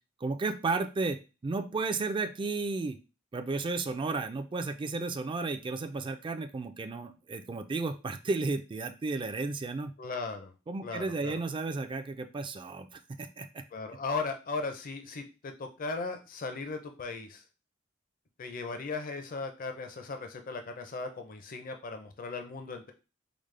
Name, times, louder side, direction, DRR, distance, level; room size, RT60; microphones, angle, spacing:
voice 1, 0.2-3.0 3.3-9.9 10.7-13.6, right 3 dB, 25° right, 8 dB, 0.3 m, -33 dB
voice 2, 10.0-10.5 10.8-11.3 13.7-17.4 18.4-22.9, left 4 dB, 45° left, 6 dB, 0.5 m, -37 dB
5.0 x 2.0 x 3.2 m, 0.30 s
head